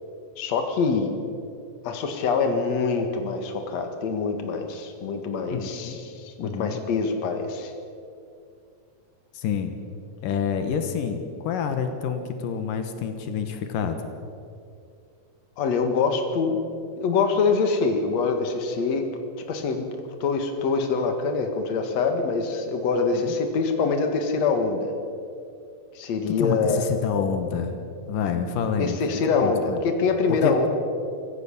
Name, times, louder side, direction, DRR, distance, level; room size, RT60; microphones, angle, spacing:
voice 1, 0.4-1.1 1.8-7.7 15.6-16.6 17.0-19.1 19.5-19.8 20.2-24.9 25.9-26.8 28.8-30.7, left 4 dB, 60° left, 5 dB, 2.9 m, -24 dB
voice 2, 5.5-6.0 6.4-6.8 9.3-9.7 10.2-14.1 23.2-23.3 26.3-27.7 28.1-29.0 29.3-29.8 30.3-30.7, left 7 dB, 90° left, 7 dB, 3.0 m, -28 dB
25.5 x 15.0 x 7.2 m, 2.4 s
omnidirectional pair, 3.8 m